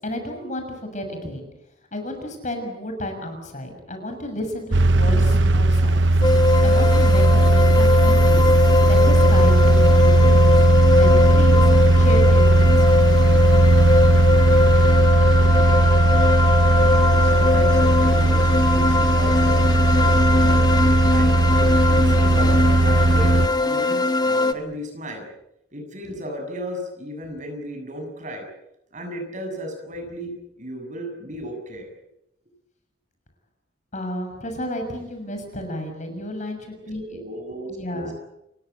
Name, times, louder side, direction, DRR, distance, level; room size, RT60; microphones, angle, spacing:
voice 1, 0.0-1.5 1.9-6.1 6.6-8.4 8.8-10.5 10.9-13.3 33.9-37.2 37.7-38.1, equal, 40° left, 5 dB, 6.8 m, -31 dB
sound 1, 4.7-23.5, right 2 dB, 70° right, 0.9 m, -17 dB
sound 2, 6.2-24.5, left 3 dB, 20° left, 1.4 m, -21 dB
voice 2, 17.2-21.3 21.9-25.3 25.7-28.5 28.9-31.9 37.1-38.1, equal, 40° right, 4 dB, 7.2 m, -35 dB
29.5 x 17.0 x 8.3 m, 0.83 s
head